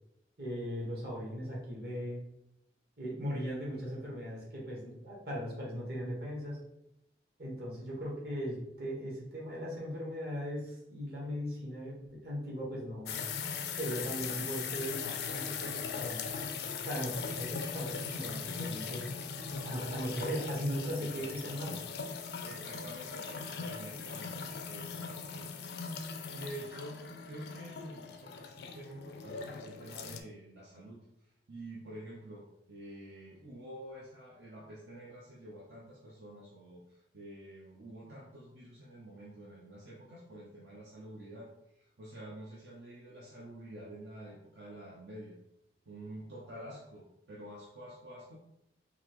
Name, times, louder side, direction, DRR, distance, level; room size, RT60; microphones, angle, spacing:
voice 1, 0.4-2.2 3.0-6.6 7.4-13.2 13.8-16.3 16.8-19.0 19.6-21.8, equal, 60° right, -4 dB, 1.3 m, -38 dB
sound 1, 13.1-30.2, left 6 dB, 65° left, 0.4 m, -40 dB
voice 2, 21.0-22.0 22.3-25.7 26.0-31.0 31.5-45.4 45.9-48.4, right 1 dB, 80° right, -5 dB, 0.7 m, -48 dB
4.0 x 2.8 x 3.0 m, 0.82 s
head